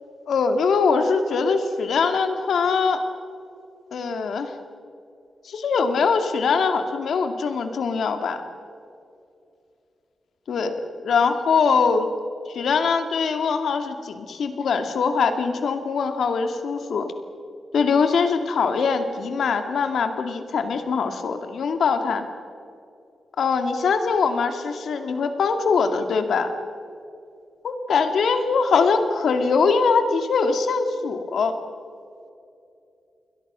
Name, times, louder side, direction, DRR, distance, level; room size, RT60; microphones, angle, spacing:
voice 1, 0.3-3.0 3.9-4.6 5.4-8.4 10.5-12.1 12.5-17.1 17.7-22.2 23.4-26.5 27.6-31.6, left 5 dB, 80° left, 7 dB, 2.2 m, -22 dB
29.5 x 22.0 x 6.2 m, 2.5 s
wide cardioid pair, 125°, 0 cm